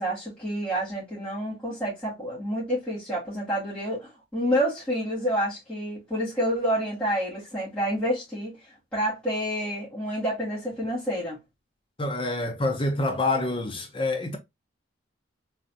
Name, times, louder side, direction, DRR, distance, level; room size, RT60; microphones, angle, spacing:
voice 1, 0.0-8.5 8.9-11.4, equal, 5° left, 2.3 m, -28 dB
voice 2, 12.0-14.4, left 2 dB, 25° left, 0.5 m, -27 dB
3.8 x 3.3 x 2.7 m
head